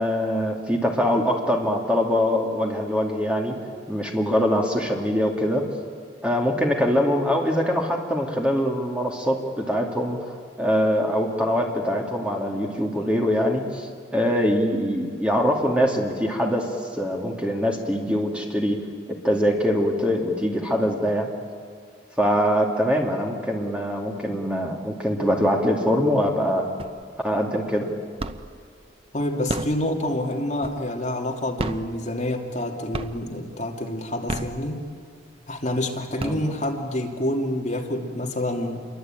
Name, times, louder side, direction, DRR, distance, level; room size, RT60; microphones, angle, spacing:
voice 1, 0.0-3.6 3.9-5.7 6.2-16.7 17.0-18.8 19.1-21.3 22.2-26.7 27.2-27.9 36.2-36.4, equal, 5° right, 1 dB, 2.4 m, -23 dB
sound 1, 26.8-27.3 27.6-28.7 29.3-31.1 31.5-32.6 32.9-33.5 34.1-35.1 35.6-35.7 36.0-36.9, right 2 dB, 30° right, 0.8 m, -32 dB
voice 2, 29.1-34.8 35.5-38.8, left 1 dB, 40° left, 1 dB, 2.5 m, -27 dB
28.0 x 23.5 x 9.0 m, 2.3 s
head